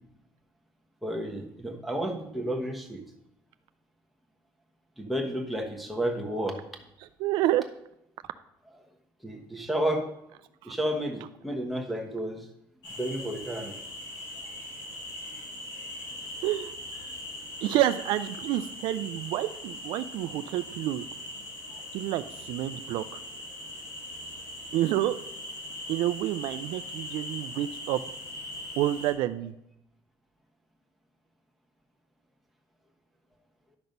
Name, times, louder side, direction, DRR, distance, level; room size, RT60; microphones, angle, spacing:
voice 1, 1.0-3.0 5.0-6.6 9.2-10.1 10.6-12.5 12.9-13.8 21.7-21.8, right 1 dB, ahead, 0 dB, 1.2 m, -31 dB
voice 2, 7.2-7.6 10.6-10.8 16.4-16.7 17.6-21.0 21.9-23.0 24.7-25.2 25.9-28.0 28.8-29.5, right 14 dB, 80° right, 11 dB, 0.4 m, -28 dB
sound 1, 12.8-29.1, left 1 dB, 70° left, 4.3 m, -40 dB
11.0 x 6.0 x 5.3 m, 0.81 s
cardioid pair, 160°, 8 cm